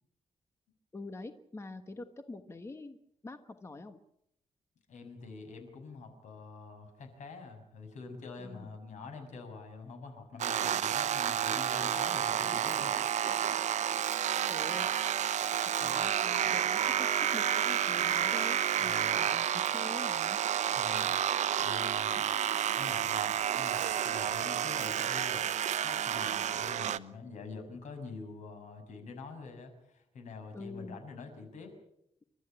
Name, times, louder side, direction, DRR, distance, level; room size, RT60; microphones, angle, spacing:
voice 1, 0.9-3.0 3.2-4.0 8.4-8.7 14.5-14.9 15.8-20.4 30.5-31.0, left 2 dB, 20° left, 8 dB, 1.3 m, -45 dB
voice 2, 4.9-12.9 13.3-13.4 15.4-15.5 15.8-16.0 18.8-19.3 20.7-22.4 22.7-25.5 25.8-31.7, left 4 dB, 85° left, 6 dB, 6.7 m, -46 dB
sound 1, 10.4-27.0, right 10 dB, 80° right, 0.9 m, -30 dB
30.0 x 13.5 x 8.8 m, 0.74 s
wide cardioid pair, 150°, 12 cm